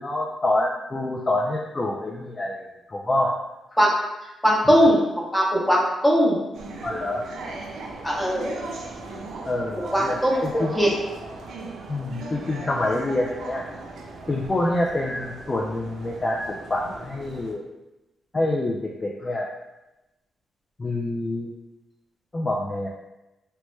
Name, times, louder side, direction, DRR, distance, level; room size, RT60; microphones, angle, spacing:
voice 1, 0.0-3.3 6.8-7.2 9.5-10.7 11.9-13.6 14.3-17.7 18.3-19.5 20.8-21.5 22.3-22.9, left 1 dB, 25° left, -2 dB, 0.3 m, -26 dB
voice 2, 4.2-6.4 8.0-8.7 9.9-10.9, equal, 10° left, -4 dB, 0.9 m, -20 dB
sound 1, 6.5-17.5, right 3 dB, 75° right, 0.4 m, -38 dB
3.0 x 2.1 x 3.2 m, 0.98 s
cardioid pair, 85°, 0 cm